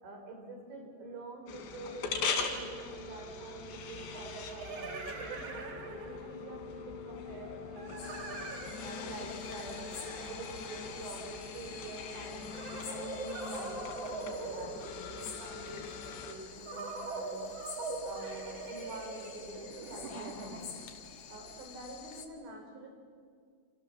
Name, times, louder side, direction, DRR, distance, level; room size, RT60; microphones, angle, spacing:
voice 1, 0.0-8.2 8.8-12.6 12.9-17.5 18.0-20.7 21.3-22.9, right 2 dB, 80° right, 3 dB, 6.3 m, -47 dB
sound 1, 1.5-16.3, left 5 dB, 80° left, 4.7 m, -41 dB
sound 2, 2.7-2.8 4.1-6.5 7.8-11.2 12.4-15.5 16.7-20.9, right 3 dB, 40° right, 2.8 m, -43 dB
sound 3, 8.0-22.3, left 6 dB, 50° left, 2.5 m, -49 dB
29.5 x 27.0 x 7.2 m, 2.1 s
omnidirectional pair, 5.0 m